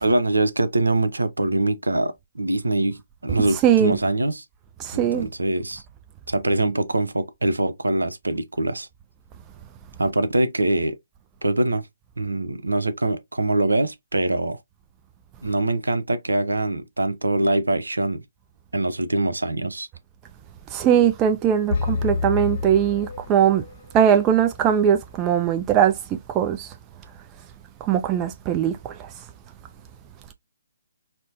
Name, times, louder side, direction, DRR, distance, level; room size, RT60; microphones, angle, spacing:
voice 1, 0.0-4.4 4.9-5.8 6.3-8.9 10.0-11.0 11.4-11.9 12.2-14.6 15.4-18.2 18.7-19.9, right 2 dB, 80° right, 0.6 m, -23 dB
voice 2, 3.6-4.0 4.8-5.3 20.7-23.6 23.9-26.0 26.3-26.7 27.8-29.1, right 9 dB, 20° right, 0.3 m, -20 dB
sound 1, 21.7-23.8, left 4 dB, 45° left, 0.7 m, -28 dB
4.3 x 2.0 x 2.6 m
figure-of-eight pair, 140°, 0 cm